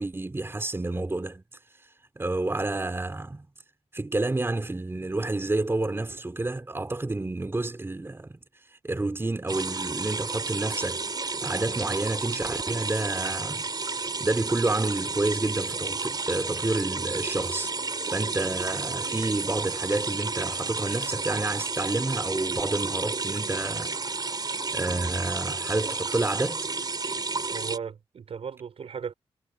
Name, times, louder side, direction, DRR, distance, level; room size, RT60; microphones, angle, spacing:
voice 1, 0.0-1.4 2.2-3.5 3.9-8.3 8.8-11.0 11.3-17.7 18.1-24.4 24.7-26.7, right 2 dB, 25° right, 3.5 m, -29 dB
sound 1, 9.5-27.8, right 4 dB, 40° right, 4.7 m, -31 dB
voice 2, 27.5-29.1, right 6 dB, 75° right, 4.6 m, -36 dB
cardioid pair, 90°, 10 cm